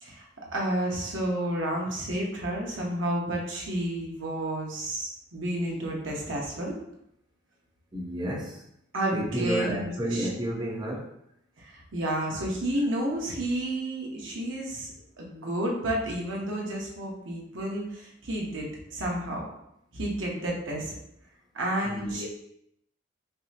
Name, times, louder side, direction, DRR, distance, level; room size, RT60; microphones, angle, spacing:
voice 1, 0.0-6.8 8.9-10.3 11.6-14.9 15.2-19.5 19.9-21.0 21.5-22.3, right 1 dB, 80° right, -2 dB, 1.0 m, -31 dB
voice 2, 7.9-8.6 9.1-11.1 21.8-22.3, right 1 dB, 25° right, -2 dB, 0.7 m, -31 dB
5.3 x 2.0 x 2.8 m, 0.77 s
head